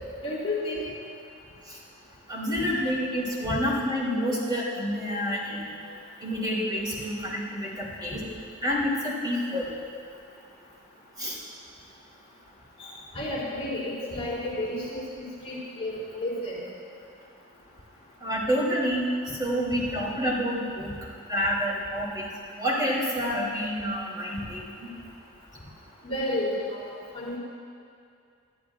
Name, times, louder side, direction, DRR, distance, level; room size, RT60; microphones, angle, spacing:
voice 1, 0.2-0.9 3.5-3.6 12.8-15.1 15.4-16.6 26.0-27.4, left 1 dB, 30° left, -8 dB, 3.6 m, -31 dB
voice 2, 2.3-5.6 6.2-8.2 8.6-9.7 11.2-11.4 18.2-20.9 21.3-22.3 22.6-24.9, equal, 20° right, -6 dB, 3.6 m, -28 dB
23.0 x 14.0 x 2.6 m, 2.4 s
head